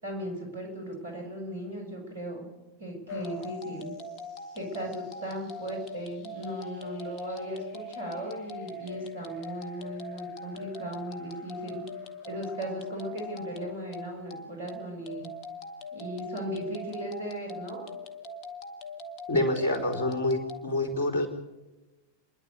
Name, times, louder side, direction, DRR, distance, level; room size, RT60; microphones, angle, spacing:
voice 1, 0.0-2.4 2.8-3.9 4.5-11.8 12.3-15.3 15.9-17.9, right 1 dB, 70° right, 2 dB, 6.9 m, -37 dB
sound 1, 3.1-20.6, left 2 dB, 35° left, 2.1 m, -42 dB
voice 2, 19.3-21.3, left 1 dB, 60° left, 2 dB, 4.2 m, -27 dB
29.5 x 11.0 x 8.1 m, 1.1 s
figure-of-eight pair, 90°, 0 cm